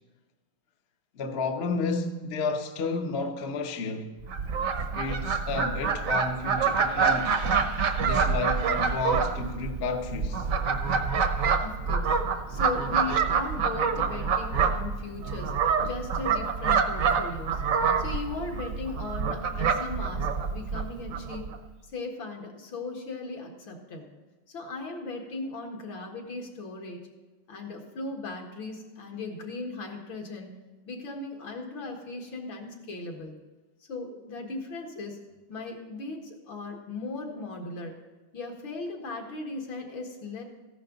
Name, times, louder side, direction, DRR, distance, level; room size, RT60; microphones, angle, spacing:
voice 1, 1.1-4.2 4.9-7.4 8.0-10.5, left 3 dB, 45° left, 0.9 m, -31 dB
Fowl, 4.2-21.6, right 5 dB, 55° right, 1.0 m, -27 dB
voice 2, 11.6-12.1 12.5-17.6 18.0-21.5 21.9-24.1 24.5-27.0 27.5-30.6 30.9-33.3 33.9-35.2 35.5-38.0 38.3-40.4, left 3 dB, 70° left, 2.5 m, -37 dB
15.0 x 11.0 x 3.9 m
omnidirectional pair, 2.2 m